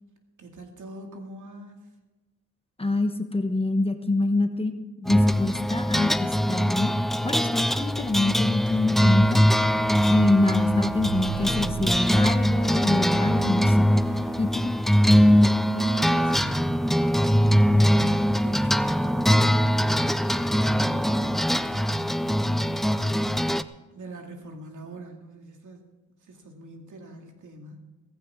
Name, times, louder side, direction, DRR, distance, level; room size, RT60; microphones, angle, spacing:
voice 1, 0.4-1.8 15.5-20.6 21.0-23.6 23.9-25.8 26.2-27.8, right 2 dB, 80° right, 2 dB, 2.5 m, -43 dB
voice 2, 2.8-4.7 5.0-7.0 7.2-9.4 10.1-13.9 14.4-14.7, left 2 dB, 20° left, 6 dB, 1.0 m, -25 dB
sound 1, 5.1-23.6, equal, ahead, 0.3 m, -22 dB
Squeak, 8.9-15.2 16.0-16.1, right 5 dB, 45° right, 0.9 m, -36 dB
16.0 x 15.0 x 3.7 m, 1.2 s
wide cardioid pair, 145°, 30 cm